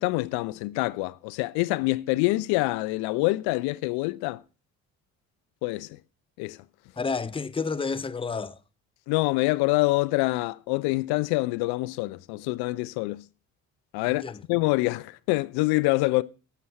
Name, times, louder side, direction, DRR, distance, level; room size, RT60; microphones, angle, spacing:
voice 1, 0.0-4.4 5.6-6.0 6.4-6.6 9.1-13.2 13.9-16.2, left 22 dB, 80° left, 0.5 m, -26 dB
voice 2, 7.0-8.6 14.0-14.4, left 4 dB, 15° left, 0.6 m, -30 dB
11.5 x 7.6 x 5.9 m
hypercardioid pair, 55°, 38 cm